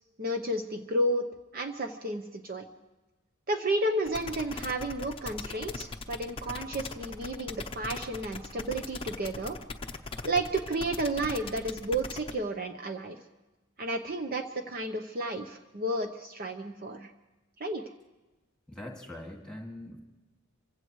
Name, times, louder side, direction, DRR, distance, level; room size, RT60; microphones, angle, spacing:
voice 1, 0.2-1.2 1.5-2.6 3.5-9.6 10.2-13.2 13.8-17.1 17.6-17.8, right 1 dB, 40° right, 5 dB, 0.8 m, -32 dB
sound 1, 4.1-12.3, left 3 dB, 25° left, 0.7 m, -39 dB
voice 2, 18.7-20.0, left 1 dB, 5° left, 0 dB, 2.0 m, -42 dB
27.0 x 16.0 x 3.1 m, 1.1 s
head